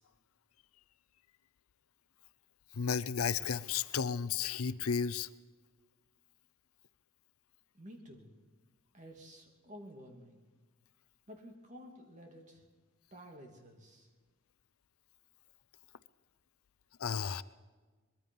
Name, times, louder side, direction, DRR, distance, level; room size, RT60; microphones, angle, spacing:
voice 1, 2.7-5.3 17.0-17.4, left 6 dB, 80° left, 16 dB, 0.6 m, -33 dB
voice 2, 7.7-8.3 8.9-10.4 11.3-12.7 13.1-14.1, equal, 35° right, 2 dB, 2.6 m, -52 dB
23.0 x 21.5 x 5.4 m, 1.3 s
head